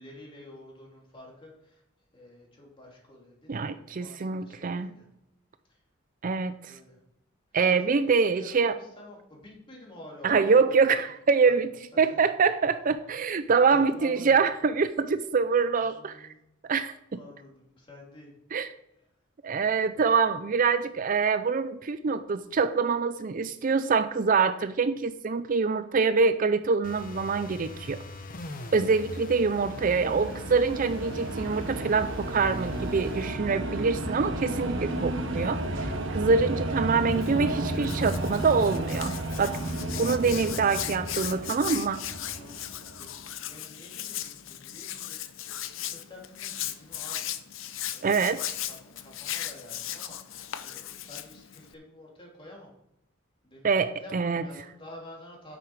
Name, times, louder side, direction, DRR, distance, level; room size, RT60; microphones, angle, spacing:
voice 1, 0.0-1.8 2.1-5.1 5.7-5.8 6.7-7.0 7.9-10.8 11.4-11.5 11.9-12.2 12.9-13.2 13.7-14.4 15.8-16.4 17.1-18.5 42.3-47.3 47.9-52.7 53.4-55.6, left 1 dB, 25° left, -2 dB, 3.0 m, -49 dB
voice 2, 3.5-4.9 6.2-6.7 7.5-8.7 10.2-16.3 16.7-17.2 18.5-18.7 19.4-28.0 28.7-39.6 40.0-42.0 48.0-48.4 53.6-54.4, right 5 dB, 40° right, 12 dB, 0.4 m, -25 dB
sound 1, 26.8-33.4, left 2 dB, 45° left, 1.0 m, -42 dB
sound 2, 28.7-43.2, right 1 dB, 65° right, 1.4 m, -33 dB
Hands, 37.1-51.7, left 11 dB, 75° left, 0.7 m, -37 dB
9.5 x 8.1 x 4.8 m, 0.83 s
head